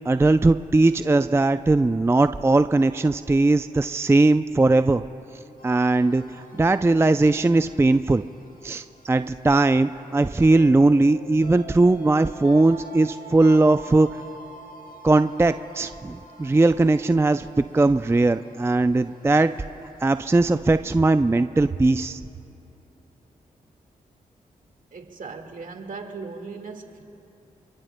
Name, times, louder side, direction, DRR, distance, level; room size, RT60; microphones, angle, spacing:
voice 1, 0.1-5.0 5.6-8.2 8.6-14.1 15.0-17.5 17.7-19.5 20.0-22.2, right 2 dB, 15° right, 10 dB, 0.4 m, -19 dB
sound 1, 5.6-20.3, right 1 dB, 65° left, 1.3 m, -46 dB
voice 2, 24.9-27.0, right 4 dB, 60° right, 4 dB, 1.8 m, -38 dB
28.0 x 23.0 x 2.2 m, 2.9 s
cardioid pair, 50°, 15 cm